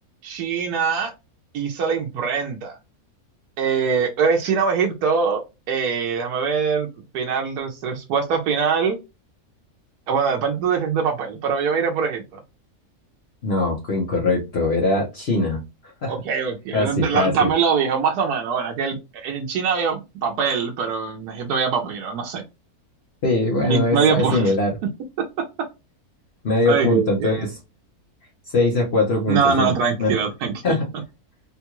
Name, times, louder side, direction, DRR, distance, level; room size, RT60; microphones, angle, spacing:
voice 1, 0.2-1.1 1.5-2.7 3.6-5.4 5.7-6.9 7.1-9.0 10.1-12.2 16.1-22.4 23.7-24.5 26.7-27.3 29.3-30.8, right 6 dB, 85° right, 1 dB, 1.2 m, -23 dB
voice 2, 13.4-15.6 16.0-16.1 16.7-17.5 23.2-24.8 26.4-27.6 28.5-29.7 30.0-30.2 30.6-30.9, left 2 dB, 50° left, -1 dB, 1.0 m, -21 dB
3.7 x 2.2 x 2.9 m, 0.25 s
omnidirectional pair, 1.6 m